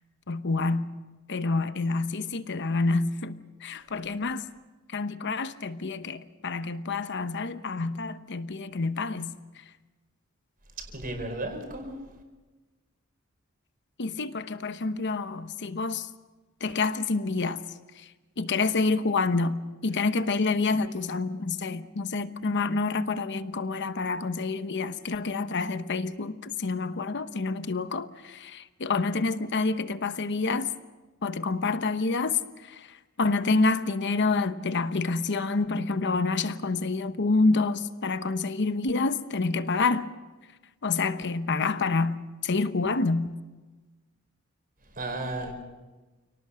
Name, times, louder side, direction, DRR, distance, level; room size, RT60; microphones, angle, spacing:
voice 1, 0.3-0.9 1.3-4.4 4.9-9.3 14.0-16.1 16.6-17.6 18.0-18.1 18.4-30.7 31.2-40.1 40.8-43.3, left 3 dB, 55° left, 1.0 m, -28 dB
voice 2, 10.8-12.1 44.9-45.5, right 2 dB, 40° right, 4.8 m, -34 dB
29.0 x 18.5 x 6.3 m
head